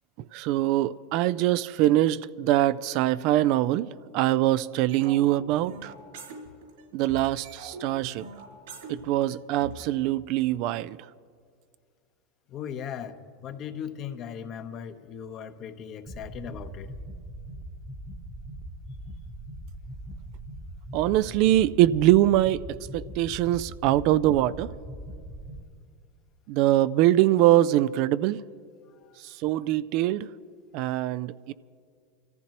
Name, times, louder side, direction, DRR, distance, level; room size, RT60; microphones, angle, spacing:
voice 1, 0.3-5.9 6.9-8.3 8.9-11.0 20.9-24.7 26.5-28.4 29.2-30.3 30.7-31.5, right 14 dB, 55° right, 0.4 m, -23 dB
sound 1, 4.9-6.8 7.1-9.9, right 2 dB, 75° right, 4.7 m, -43 dB
voice 2, 12.5-13.2 13.4-17.0, left 8 dB, 45° left, 0.9 m, -38 dB
sound 2, 16.1-25.6, right 1 dB, 20° right, 1.0 m, -41 dB
25.5 x 14.5 x 3.0 m
hypercardioid pair, 110°, 0 cm